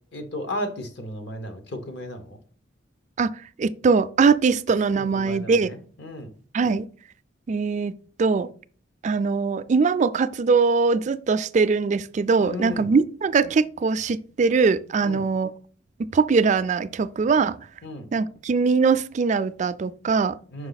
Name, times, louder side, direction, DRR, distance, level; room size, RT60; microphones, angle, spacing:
voice 1, 0.1-2.4 4.9-6.3 12.4-12.9 15.0-15.2 17.8-18.1 20.5-20.7, left 1 dB, 65° left, 1.1 m, -34 dB
voice 2, 3.6-5.7 6.5-6.9 7.5-7.9 8.2-8.5 9.0-15.5 16.0-17.6 18.1-20.4, right 4 dB, 40° right, 0.3 m, -21 dB
5.6 x 4.7 x 4.0 m
head